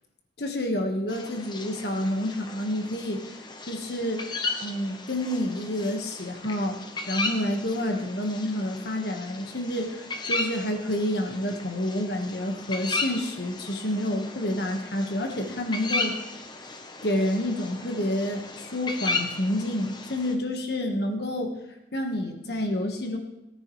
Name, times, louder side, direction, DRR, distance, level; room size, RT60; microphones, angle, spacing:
voice 1, 0.4-3.2 3.7-4.3 4.6-6.8 7.1-16.2 17.0-21.5 21.9-23.2, left 1 dB, 60° left, 3 dB, 1.5 m, -29 dB
sound 1, 1.1-20.3, left 3 dB, 25° left, 0.9 m, -35 dB
18.0 x 9.5 x 3.2 m, 0.92 s
head